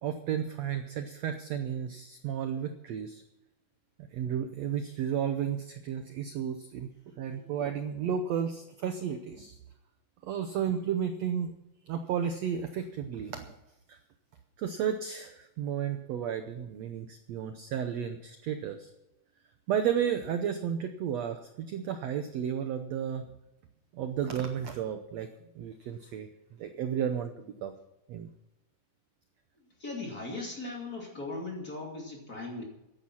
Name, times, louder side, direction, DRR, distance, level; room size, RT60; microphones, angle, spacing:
voice 1, 0.0-3.2 4.0-6.9 7.2-9.6 10.2-11.5 11.9-13.5 13.9-14.0 14.6-18.9 19.7-23.3 23.9-25.3 25.6-26.3 26.6-27.7 28.1-28.3, right 8 dB, 80° right, 7 dB, 1.5 m, -33 dB
voice 2, 29.8-32.6, left 2 dB, 25° left, 0 dB, 2.7 m, -38 dB
15.0 x 11.0 x 5.6 m, 0.90 s
omnidirectional pair, 4.2 m